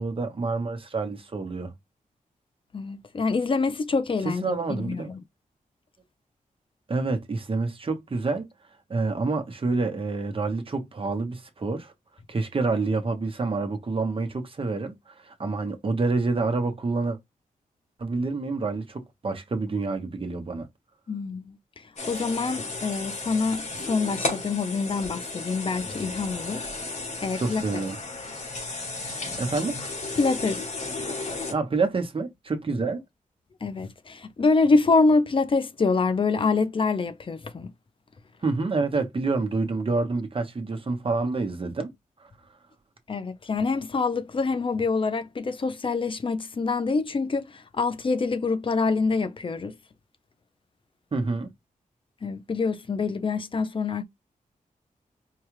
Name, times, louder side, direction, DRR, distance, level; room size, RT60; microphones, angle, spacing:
voice 1, 0.0-1.7 4.2-5.1 6.9-8.5 8.9-11.9 12.3-17.2 18.0-20.7 27.4-28.0 29.4-29.8 31.5-33.0 38.4-41.9 42.2-42.3 51.1-51.5, right 3 dB, 40° right, 1.0 m, -28 dB
voice 2, 2.7-5.2 21.1-21.6 22.0-26.7 27.2-27.8 28.3-28.4 30.2-30.6 33.6-37.7 43.1-49.7 52.2-54.0, left 4 dB, 35° left, 0.5 m, -26 dB
sound 1, 22.0-31.5, left 3 dB, 55° left, 1.3 m, -34 dB
4.6 x 2.3 x 3.1 m
wide cardioid pair, 95°, 14 cm